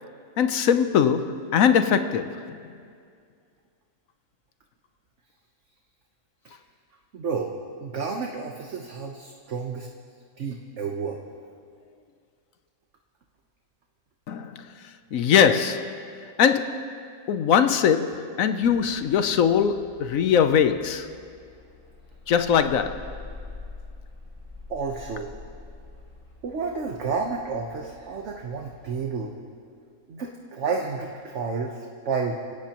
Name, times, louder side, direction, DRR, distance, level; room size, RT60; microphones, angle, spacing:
voice 1, 0.4-2.6 14.3-14.8 15.1-16.1 16.4-16.9 17.3-21.1 22.3-23.1, left 7 dB, 70° left, 1.1 m, -21 dB
voice 2, 7.1-7.5 7.8-9.9 10.4-11.2 24.7-25.3 26.4-29.3 30.1-32.3, right 5 dB, 55° right, 1.3 m, -30 dB
sound 1, 18.6-28.9, left 3 dB, 15° right, 3.0 m, -46 dB
27.0 x 17.0 x 3.0 m
omnidirectional pair, 1.5 m